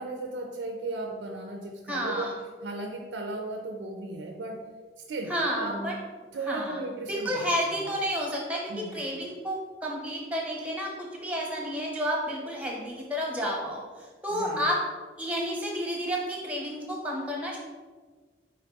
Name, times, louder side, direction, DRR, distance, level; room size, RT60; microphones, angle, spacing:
voice 1, 0.0-4.6 5.0-5.9 6.3-7.8 8.7-9.0 14.3-14.7, right 2 dB, 85° right, 3 dB, 0.4 m, -36 dB
voice 2, 1.9-2.4 5.3-5.9 6.5-6.8 7.1-13.8 14.2-14.8 15.2-17.6, equal, 5° right, -1 dB, 0.8 m, -31 dB
4.5 x 3.0 x 3.9 m, 1.4 s
head